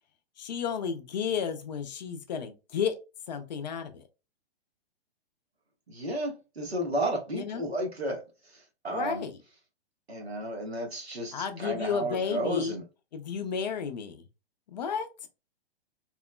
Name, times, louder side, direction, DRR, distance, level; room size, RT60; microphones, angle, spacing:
voice 1, 0.4-2.9 3.3-4.0 7.3-7.6 8.9-9.4 11.3-12.8 13.1-14.2 14.7-15.3, left 6 dB, 45° left, 0.5 m, -32 dB
voice 2, 5.9-8.2 8.5-9.2 10.1-12.8, right 1 dB, 85° right, 0.9 m, -32 dB
3.0 x 2.0 x 2.2 m
figure-of-eight pair, 115°, 31 cm